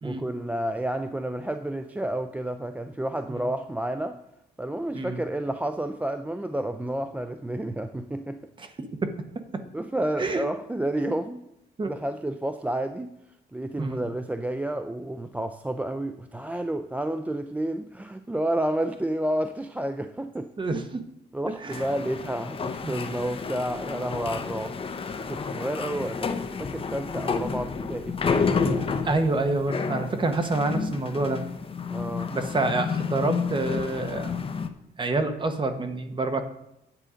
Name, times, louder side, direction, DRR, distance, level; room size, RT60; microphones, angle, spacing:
voice 1, 0.0-4.2 4.6-8.4 9.7-11.4 11.9-13.2 13.5-20.5 21.3-28.9 31.9-32.3, right 1 dB, 10° right, 9 dB, 0.4 m, -30 dB
voice 2, 20.6-21.0 21.4-21.9 22.8-22.9 29.0-31.4 32.3-34.3 35.0-36.4, right 2 dB, 25° right, 8 dB, 1.1 m, -27 dB
sound 1, 21.7-34.7, left 5 dB, 30° left, 0.8 m, -30 dB
10.0 x 8.0 x 5.0 m, 0.83 s
cardioid pair, 140°, 18 cm